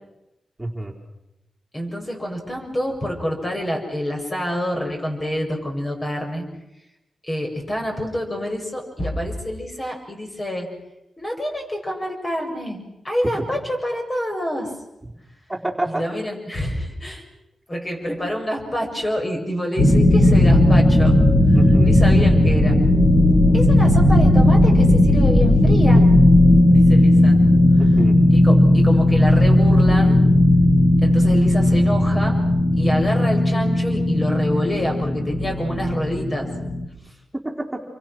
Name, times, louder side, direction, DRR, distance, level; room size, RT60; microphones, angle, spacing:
voice 1, 0.6-0.9 13.4-13.5 15.0-15.1 15.5-16.0 21.5-21.9 27.8-28.2 37.3-37.8, right 1 dB, 10° right, -1 dB, 4.3 m, -28 dB
voice 2, 1.7-6.5 7.2-10.7 11.2-14.7 15.8-17.2 17.7-21.2 21.5-22.8 23.5-26.1 26.7-27.4 27.8-28.0 28.3-30.3 31.0-32.4 32.8-36.5, equal, 25° left, 2 dB, 7.3 m, -27 dB
sound 1, 19.8-36.9, left 1 dB, 45° left, 6.4 m, -15 dB
29.0 x 24.5 x 6.4 m, 0.92 s
cardioid pair, 85°, 0 cm